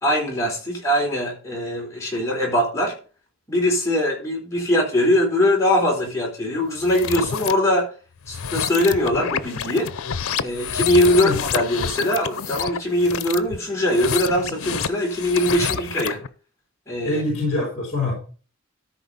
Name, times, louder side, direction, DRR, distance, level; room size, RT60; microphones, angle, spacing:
voice 1, 0.0-3.0 3.5-7.9 8.3-9.9 10.4-16.2 16.9-17.2, left 1 dB, 15° left, -3 dB, 4.1 m, -21 dB
sound 1, 6.8-7.5 8.2-16.3, left 7 dB, 90° left, 0.7 m, -28 dB
voice 2, 17.0-18.1, left 2 dB, 30° left, -1 dB, 3.7 m, -24 dB
13.5 x 5.1 x 5.5 m, 0.37 s
head